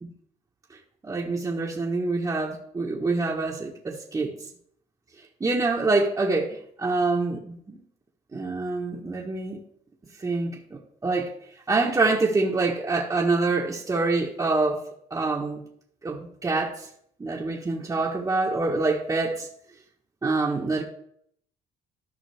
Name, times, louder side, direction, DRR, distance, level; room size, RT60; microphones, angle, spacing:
voice 1, 1.0-4.3 5.4-7.8 8.3-9.6 10.2-11.3 11.7-14.8 15.1-15.6 16.0-16.9 17.2-19.5 20.2-20.8, right 3 dB, 20° right, -4 dB, 1.3 m, -26 dB
13.5 x 5.4 x 3.4 m, 0.68 s
cardioid pair, 110°, 17 cm